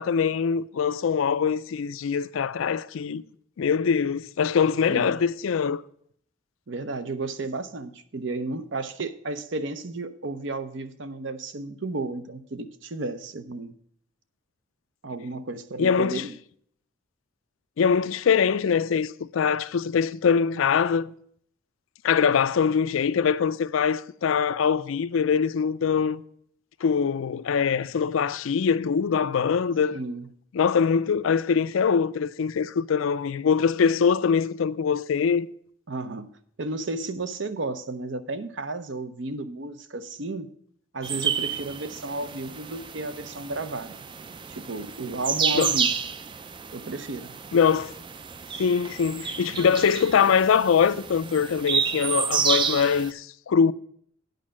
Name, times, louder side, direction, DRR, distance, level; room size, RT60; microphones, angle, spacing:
voice 1, 0.0-3.2 3.6-5.8 15.8-16.2 17.8-21.1 22.0-26.2 26.8-30.0 30.5-35.5 45.5-45.8 47.5-47.9 48.6-53.7, left 6 dB, 90° left, 0.4 m, -23 dB
voice 2, 6.7-13.7 15.0-16.4 29.9-30.3 35.9-36.3 36.6-40.5 40.9-43.9 44.5-45.9 46.7-47.4, right 2 dB, 65° right, 0.7 m, -33 dB
sound 1, 41.0-53.1, right 6 dB, 25° right, 0.3 m, -30 dB
9.2 x 5.3 x 7.4 m
head